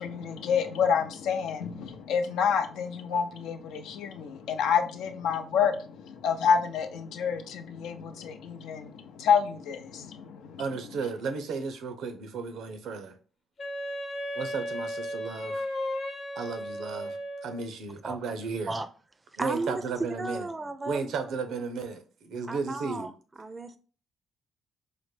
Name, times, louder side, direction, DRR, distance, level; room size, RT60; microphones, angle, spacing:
voice 1, 0.0-10.6, left 7 dB, 85° left, 0.5 m, -28 dB
voice 2, 10.6-13.2 14.3-15.7 16.4-17.2 17.4-18.8 19.4-20.5 20.8-23.1, right 4 dB, 80° right, 0.6 m, -34 dB
Wind instrument woodwind instrument, 13.6-17.7, equal, 50° left, 0.8 m, -35 dB
voice 3, 19.4-19.7 20.0-21.3 22.5-23.1 23.4-23.8, right 2 dB, 20° right, 0.4 m, -34 dB
4.8 x 2.1 x 3.2 m
cardioid pair, 90°, 0 cm